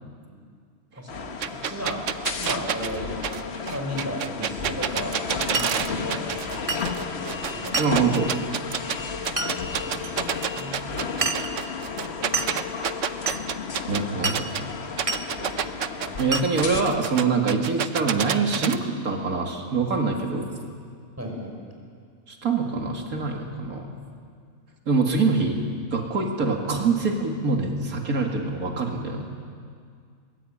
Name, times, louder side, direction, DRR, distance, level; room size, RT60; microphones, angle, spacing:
voice 1, 1.0-2.0 2.3-3.1 3.6-6.6 7.0-7.9 9.0-9.5 9.8-10.1 10.5-11.5 12.1-12.5 15.3-15.7 15.9-16.3 21.2-21.5, equal, 10° right, 0 dB, 5.3 m, -36 dB
sound 1, 1.1-16.8, left 5 dB, 50° left, 1.4 m, -33 dB
sound 2, 1.4-6.6 6.8-9.0 9.2-14.6 15.0-18.8, right 9 dB, 65° right, 1.1 m, -28 dB
Glass, 5.5-5.8 6.7-6.9 7.7-8.0 9.4-9.5 10.0-10.1 11.2-11.6 12.3-12.6 13.3-13.5 14.2-14.5 15.1-15.3 16.3-16.5, right 3 dB, 25° right, 1.2 m, -28 dB
voice 2, 7.7-8.3 13.9-14.7 16.2-20.5 22.3-23.9 24.9-25.6 25.9-29.2, right 4 dB, 90° right, 1 dB, 2.6 m, -24 dB
22.0 x 21.5 x 8.8 m, 2.1 s
omnidirectional pair, 1.5 m